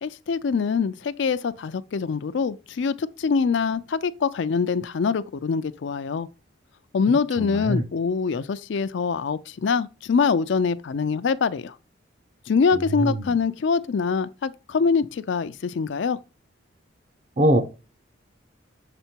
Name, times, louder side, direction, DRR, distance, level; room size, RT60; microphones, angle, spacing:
voice 1, 0.0-6.3 6.9-11.7 12.5-16.2, left 5 dB, 60° left, 0.4 m, -24 dB
voice 2, 7.4-7.8 12.7-13.3 17.4-17.6, right 1 dB, 35° right, 0.8 m, -23 dB
6.9 x 3.7 x 4.4 m
head